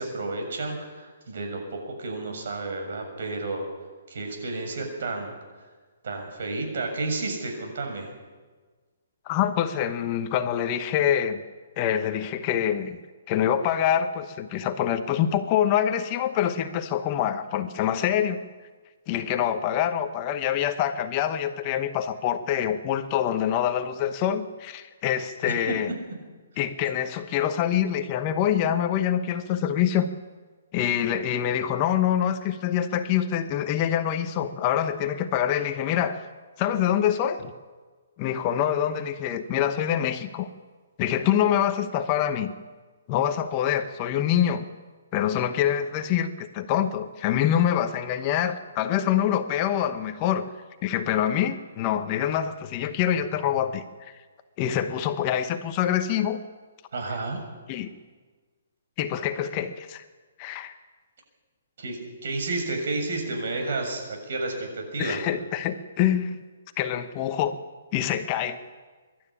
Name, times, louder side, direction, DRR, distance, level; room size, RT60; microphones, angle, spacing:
voice 1, 0.0-3.6 4.1-5.3 6.0-8.1 25.7-25.8 56.9-57.4 61.8-65.2, right 3 dB, 60° right, 3 dB, 7.0 m, -31 dB
voice 2, 9.3-11.4 11.8-13.0 13.3-18.4 19.1-25.9 26.6-30.1 30.7-36.2 36.6-37.5 38.2-40.5 41.0-42.5 43.1-44.7 45.1-50.5 50.8-54.1 54.6-56.4 57.7-57.9 59.0-60.0 60.4-60.7 65.0-66.4 66.8-67.5 67.9-68.6, left 10 dB, 25° left, 9 dB, 1.0 m, -25 dB
24.0 x 12.5 x 10.0 m, 1.4 s
hypercardioid pair, 165°, 0 cm